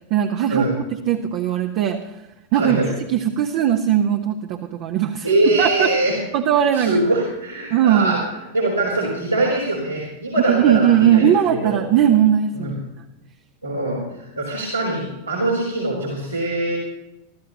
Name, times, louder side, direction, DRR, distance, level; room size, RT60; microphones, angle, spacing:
voice 1, 0.1-2.0 2.5-2.8 3.1-5.9 6.3-7.0 7.7-8.2 10.5-12.8, right 10 dB, 45° right, 3 dB, 1.3 m, -19 dB
voice 2, 2.5-2.9 5.2-6.2 6.7-8.2 8.5-11.8 12.6-12.7 13.6-16.8, right 2 dB, 85° right, -6 dB, 4.7 m, -22 dB
24.5 x 13.5 x 3.1 m, 0.93 s
figure-of-eight pair, 90°, 0 cm